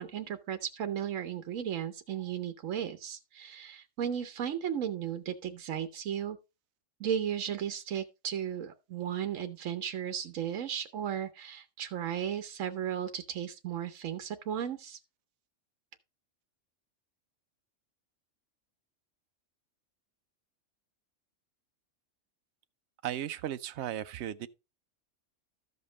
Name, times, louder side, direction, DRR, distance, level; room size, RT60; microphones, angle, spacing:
voice 1, 0.0-6.4 7.0-15.0, right 9 dB, 85° right, 1.2 m, -35 dB
voice 2, 23.0-24.5, right 11 dB, 70° right, 0.9 m, -36 dB
13.5 x 5.4 x 3.9 m
omnidirectional pair, 1.3 m